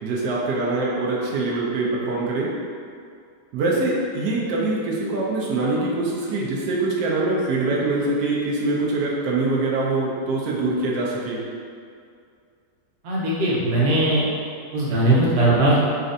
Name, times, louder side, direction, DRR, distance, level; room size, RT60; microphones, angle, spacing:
voice 1, 0.0-2.5 3.5-11.4, right 2 dB, 80° right, -4 dB, 1.2 m, -24 dB
voice 2, 13.0-14.2 14.7-15.8, right 1 dB, 50° right, -7 dB, 0.9 m, -19 dB
4.2 x 2.4 x 2.6 m, 2.3 s
omnidirectional pair, 1.8 m